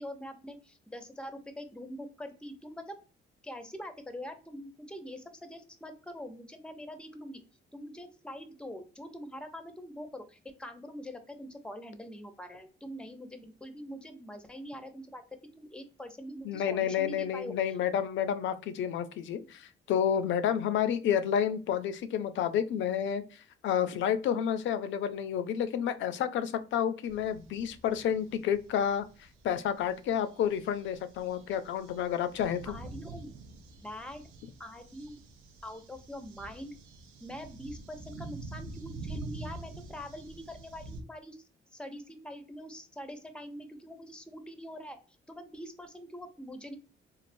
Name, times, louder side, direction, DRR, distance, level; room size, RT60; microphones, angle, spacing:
voice 1, 0.0-3.0 3.4-7.4 7.7-15.2 15.5-17.5 32.6-33.3 33.8-34.2 34.6-35.2 35.6-36.7 37.2-41.4 41.7-45.0 45.3-46.8, equal, 5° left, 8 dB, 0.5 m, -44 dB
voice 2, 16.4-29.1 29.4-32.7, left 9 dB, 70° left, 11 dB, 0.4 m, -30 dB
sound 1, 27.0-41.0, right 3 dB, 85° right, 0.6 m, -47 dB
3.2 x 2.4 x 2.5 m, 0.35 s
cardioid pair, 90°, 20 cm